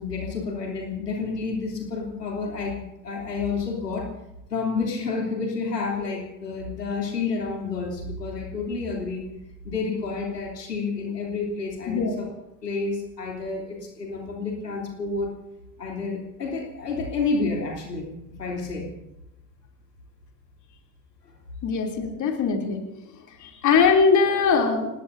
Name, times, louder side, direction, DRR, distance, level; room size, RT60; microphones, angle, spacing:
voice 1, 0.0-4.1 4.5-9.2 9.6-12.3 12.6-15.3 15.8-18.9, left 4 dB, 80° left, 0 dB, 3.3 m, -30 dB
voice 2, 11.9-12.2 21.6-22.8 23.4-24.9, left 5 dB, 40° left, 1 dB, 3.0 m, -21 dB
27.0 x 19.5 x 2.7 m, 0.91 s
figure-of-eight pair, 65°, 47 cm